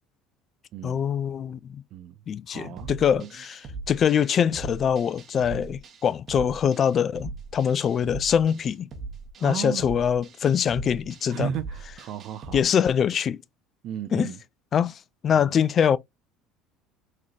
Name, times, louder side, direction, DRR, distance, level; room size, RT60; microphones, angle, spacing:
voice 1, 0.8-1.8 2.3-8.9 9.4-11.5 12.5-13.4 14.1-14.3 14.7-16.0, left 8 dB, 45° left, 0.4 m, -24 dB
voice 2, 2.5-3.3 9.4-9.9 11.3-12.6 13.8-14.4 15.3-15.5, right 9 dB, 60° right, 0.4 m, -34 dB
sound 1, 2.8-12.6, right 4 dB, 45° right, 1.1 m, -40 dB
3.8 x 3.2 x 2.7 m
hypercardioid pair, 75°, 0 cm